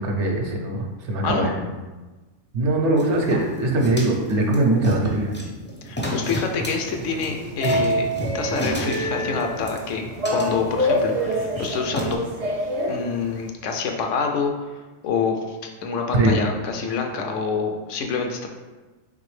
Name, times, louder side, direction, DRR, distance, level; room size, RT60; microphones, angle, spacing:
voice 1, 0.0-1.6 2.5-5.3 16.1-16.4, right 2 dB, 70° right, 1 dB, 0.9 m, -21 dB
sound 1, 3.0-12.1, right 1 dB, 15° left, 0.3 m, -31 dB
voice 2, 5.8-8.1 8.3-10.0 10.3-12.2 12.9-18.5, left 5 dB, 75° left, 3 dB, 0.9 m, -27 dB
sound 2, 6.5-13.5, equal, 50° right, 0.4 m, -27 dB
4.0 x 3.3 x 3.2 m, 1.2 s
omnidirectional pair, 1.3 m